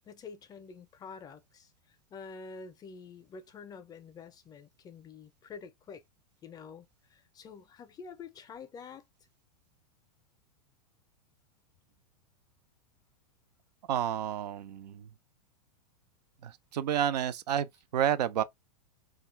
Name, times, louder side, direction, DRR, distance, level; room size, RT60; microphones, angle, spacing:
voice 1, 0.1-6.0 6.4-9.0, left 5 dB, 20° left, 0.4 m, -48 dB
voice 2, 13.9-15.1 16.4-18.4, right 10 dB, 80° right, 0.4 m, -30 dB
2.4 x 2.2 x 3.0 m
hypercardioid pair, 115°, 21 cm